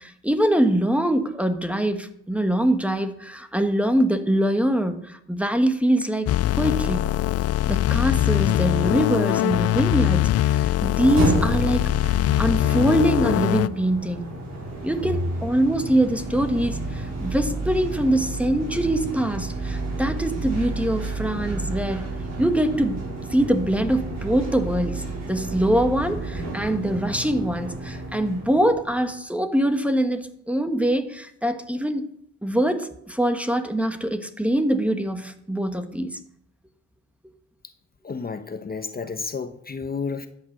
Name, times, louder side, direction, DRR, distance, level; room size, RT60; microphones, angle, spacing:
voice 1, 0.0-7.1 7.7-11.9 12.4-14.3 14.8-32.1 32.4-36.2, right 1 dB, 5° right, 8 dB, 1.3 m, -23 dB
sound 1, 6.3-13.7, left 14 dB, 55° left, 0.4 m, -22 dB
sound 2, 10.9-29.1, right 2 dB, 60° right, 6.0 m, -31 dB
voice 2, 38.0-40.3, left 5 dB, 30° left, 9 dB, 1.0 m, -31 dB
13.0 x 8.7 x 6.4 m, 0.72 s
cardioid pair, 90°, 30 cm